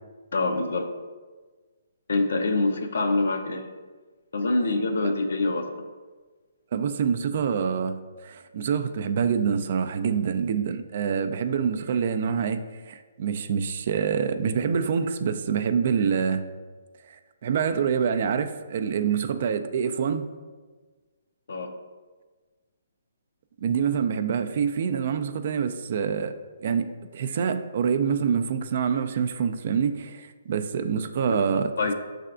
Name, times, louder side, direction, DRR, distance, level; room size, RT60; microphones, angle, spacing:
voice 1, 0.3-0.9 2.1-3.7 4.3-5.7 21.5-21.7 31.3-31.4 31.8-31.9, left 2 dB, 75° left, 5 dB, 0.5 m, -25 dB
voice 2, 6.7-16.4 17.0-20.3 23.6-26.4 26.6-31.7, right 7 dB, 55° right, 9 dB, 0.3 m, -26 dB
6.6 x 3.3 x 2.4 m, 1.4 s
hypercardioid pair, 145°, 0 cm